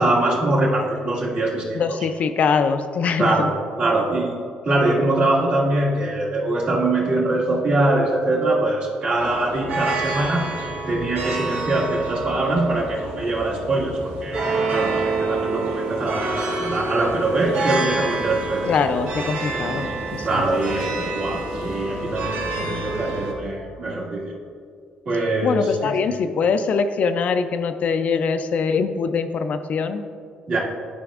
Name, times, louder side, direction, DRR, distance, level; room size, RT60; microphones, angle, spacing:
voice 1, 0.0-1.8 3.2-3.5 3.8-4.3 4.6-10.4 10.9-18.7 20.2-24.4 25.0-25.9 30.5-30.6, right 2 dB, 50° right, -5 dB, 1.7 m, -23 dB
voice 2, 1.7-3.5 18.7-20.4 25.4-30.0, left 5 dB, 55° left, 9 dB, 0.4 m, -23 dB
sound 1, 9.2-23.3, right 3 dB, 70° right, 1.1 m, -28 dB
11.0 x 5.1 x 2.4 m, 2.2 s
cardioid pair, 110°, 3 cm